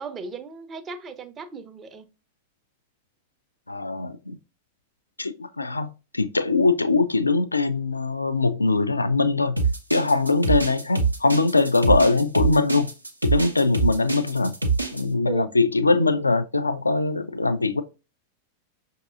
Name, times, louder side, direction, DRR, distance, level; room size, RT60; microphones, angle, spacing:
voice 1, 0.0-2.1 15.3-15.5, right 5 dB, 25° right, 0.6 m, -36 dB
voice 2, 3.7-4.4 5.2-5.9 6.1-9.6 9.9-12.9 13.2-14.6 14.9-17.8, left 3 dB, 80° left, 0.3 m, -22 dB
sound 1, 9.6-15.0, right 4 dB, 85° right, 0.6 m, -24 dB
5.8 x 2.7 x 2.4 m
figure-of-eight pair, 90°, 0 cm